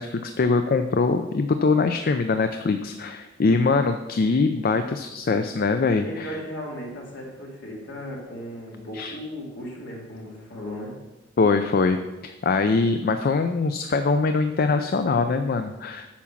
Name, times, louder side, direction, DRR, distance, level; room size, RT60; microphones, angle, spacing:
voice 1, 0.0-6.4 8.9-9.2 11.4-12.0 12.2-16.1, left 4 dB, 50° left, 8 dB, 0.4 m, -23 dB
voice 2, 6.0-10.9, equal, 65° left, -2 dB, 2.6 m, -36 dB
8.5 x 6.0 x 5.8 m, 1.1 s
head